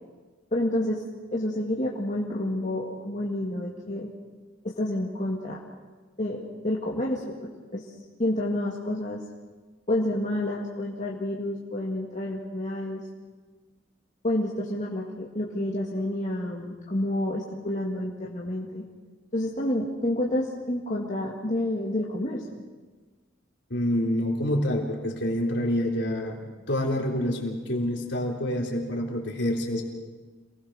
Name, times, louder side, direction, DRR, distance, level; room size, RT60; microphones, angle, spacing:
voice 1, 0.5-1.0 1.3-4.1 4.6-5.6 6.2-7.9 8.2-9.2 9.9-13.0 14.2-18.9 19.3-22.6, left 1 dB, 40° left, -3 dB, 2.1 m, -29 dB
voice 2, 23.7-29.8, left 1 dB, 60° left, 0 dB, 3.8 m, -27 dB
27.5 x 19.5 x 6.5 m, 1.3 s
head